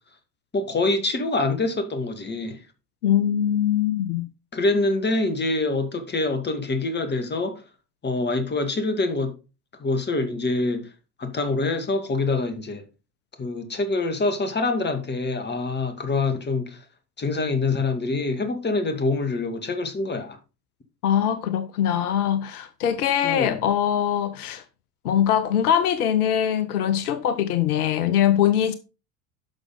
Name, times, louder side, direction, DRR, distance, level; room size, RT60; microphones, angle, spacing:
voice 1, 0.5-2.6 4.5-7.6 8.0-9.3 9.8-10.9 11.2-12.8 13.4-16.8 17.2-20.4 23.2-23.6, left 3 dB, 20° left, 2.3 m, -25 dB
voice 2, 3.0-4.3 21.0-24.6 25.0-28.7, left 10 dB, 70° left, 1.0 m, -22 dB
11.0 x 6.4 x 3.9 m
hypercardioid pair, 75°, 46 cm